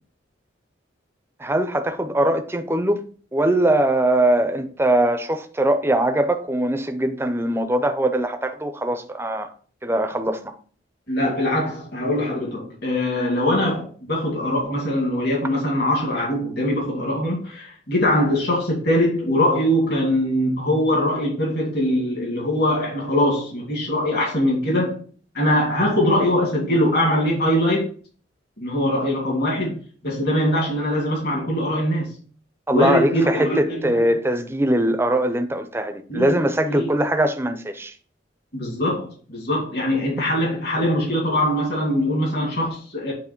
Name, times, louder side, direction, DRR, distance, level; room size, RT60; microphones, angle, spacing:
voice 1, 1.4-3.0 3.3-9.5 9.8-10.5 32.7-37.9, right 1 dB, 15° right, 0.5 m, -21 dB
voice 2, 11.1-25.0 25.3-27.9 28.6-29.8 30.0-32.1 32.7-34.0 36.1-36.4 36.7-36.9 38.5-43.1, left 1 dB, 60° left, 2.2 m, -22 dB
8.4 x 3.0 x 4.5 m
head